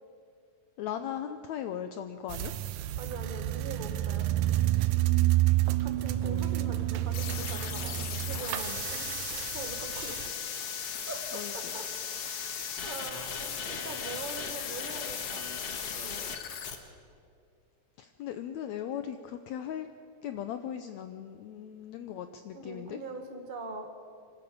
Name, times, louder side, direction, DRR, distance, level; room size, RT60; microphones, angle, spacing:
voice 1, 0.8-2.5 6.2-6.8 11.3-11.8 18.0-19.9 20.2-23.0, left 10 dB, 75° left, 9 dB, 1.7 m, -38 dB
sound 1, 2.3-10.3, right 15 dB, 75° right, 1.9 m, -29 dB
voice 2, 3.0-4.6 5.8-10.3 11.1-12.5 12.8-15.4 15.9-16.3 22.5-23.9, right 3 dB, 30° right, 4 dB, 0.9 m, -43 dB
sound 2, 7.1-16.8, left 7 dB, 55° left, 2.2 m, -37 dB
25.5 x 13.0 x 8.6 m, 2.3 s
omnidirectional pair, 3.7 m